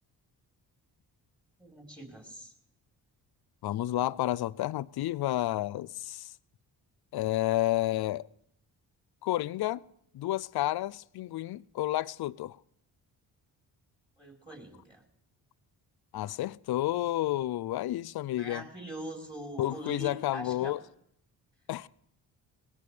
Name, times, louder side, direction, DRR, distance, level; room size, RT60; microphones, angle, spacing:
voice 1, 1.6-2.5 14.2-15.0 18.4-20.7, right 1 dB, 10° right, 4.1 m, -42 dB
voice 2, 3.6-6.3 7.1-8.3 9.2-9.8 10.1-12.6 16.1-18.6 19.6-20.8 21.7-21.9, left 15 dB, 55° left, 0.5 m, -30 dB
21.0 x 17.5 x 3.4 m
hypercardioid pair, 45°, 46 cm